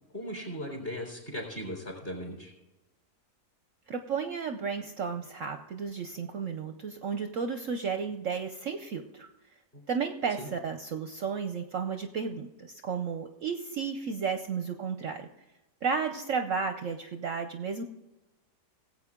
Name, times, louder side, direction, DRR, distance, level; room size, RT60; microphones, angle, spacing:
voice 1, 0.1-2.5 10.4-10.5, equal, 35° left, 1 dB, 3.8 m, -38 dB
voice 2, 3.9-9.3 9.9-15.3 15.8-17.8, right 6 dB, 60° right, 7 dB, 1.0 m, -33 dB
18.5 x 8.0 x 3.7 m, 0.98 s
omnidirectional pair, 1.8 m